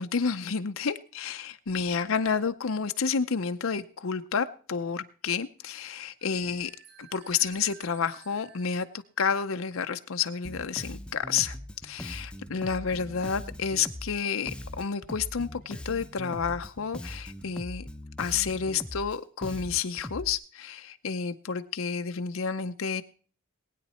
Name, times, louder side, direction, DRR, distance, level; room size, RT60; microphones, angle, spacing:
voice 1, 0.0-6.7 7.0-11.6 11.8-17.9 18.2-23.0, left 6 dB, 70° left, 0.7 m, -30 dB
sound 1, 6.2-9.0, right 8 dB, 55° right, 2.2 m, -54 dB
Bass guitar, 10.4-20.3, left 1 dB, 5° left, 0.7 m, -41 dB
19.5 x 9.3 x 4.3 m
head